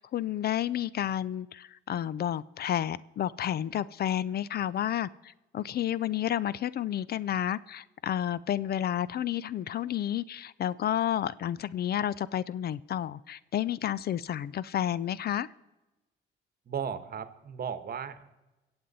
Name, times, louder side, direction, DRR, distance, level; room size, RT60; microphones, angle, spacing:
voice 1, 0.0-15.5, left 11 dB, 50° left, 20 dB, 0.4 m, -31 dB
voice 2, 16.7-18.4, right 7 dB, 50° right, 11 dB, 1.1 m, -36 dB
23.0 x 7.9 x 4.1 m, 1.1 s
cardioid pair, 90°, 20 cm